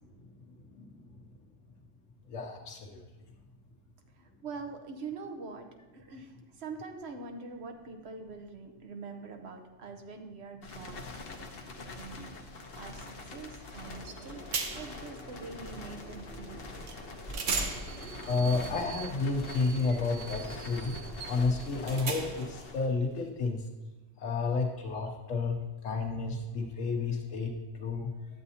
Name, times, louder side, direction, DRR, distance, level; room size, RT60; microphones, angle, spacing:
voice 1, 2.3-3.0 18.2-23.6 24.2-25.5 25.8-28.1, left 4 dB, 85° left, 1 dB, 1.2 m, -31 dB
voice 2, 4.2-5.7 5.9-11.1 11.9-12.4 12.8-14.4 14.7-16.6, right 4 dB, 60° right, 4 dB, 1.1 m, -44 dB
sound 1, 10.6-23.4, left 3 dB, 55° left, 1.0 m, -45 dB
sound 2, 13.8-22.7, equal, 20° left, 2.9 m, -45 dB
sound 3, 14.1-14.2 14.5-15.0 16.9-17.0 17.3-22.6, right 5 dB, 80° right, 1.2 m, -38 dB
11.0 x 7.9 x 2.8 m, 1.2 s
omnidirectional pair, 1.3 m